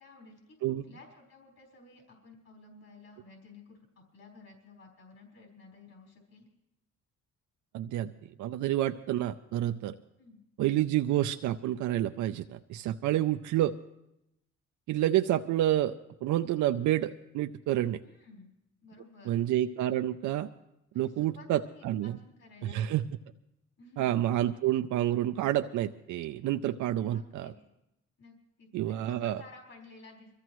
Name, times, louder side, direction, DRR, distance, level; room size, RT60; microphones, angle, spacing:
voice 1, 0.0-6.5 10.2-10.4 18.0-18.5 18.8-19.4 20.9-23.1 23.8-24.2 24.5-24.6 27.1-27.5 28.2-30.4, left 3 dB, 55° left, -1 dB, 4.3 m, -54 dB
voice 2, 7.7-8.1 8.4-9.9 10.6-13.7 14.9-15.9 16.2-18.0 19.3-20.5 21.0-22.1 22.6-23.0 24.0-27.5 28.7-29.4, right 13 dB, 75° right, 8 dB, 0.5 m, -29 dB
23.5 x 14.5 x 3.1 m, 0.85 s
cardioid pair, 90°, 30 cm